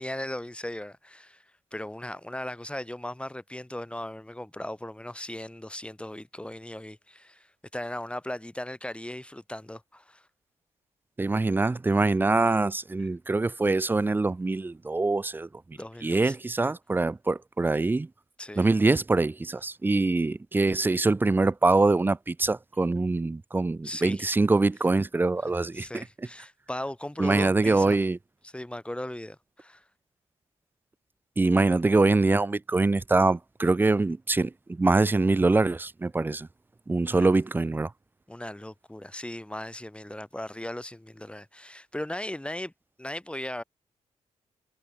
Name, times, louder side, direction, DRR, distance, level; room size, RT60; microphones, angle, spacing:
voice 1, 0.0-10.3 13.0-13.1 15.8-16.4 18.4-18.7 23.8-24.3 25.4-28.0 28.4-29.8 37.1-37.3 38.3-42.7 43.0-43.6, left 1 dB, 10° left, 2.4 m, -38 dB
voice 2, 11.2-15.5 16.0-18.1 18.6-25.9 27.2-28.2 31.4-36.5 36.9-37.9, right 3 dB, 15° right, 0.4 m, -24 dB
cardioid pair, 70°, 13 cm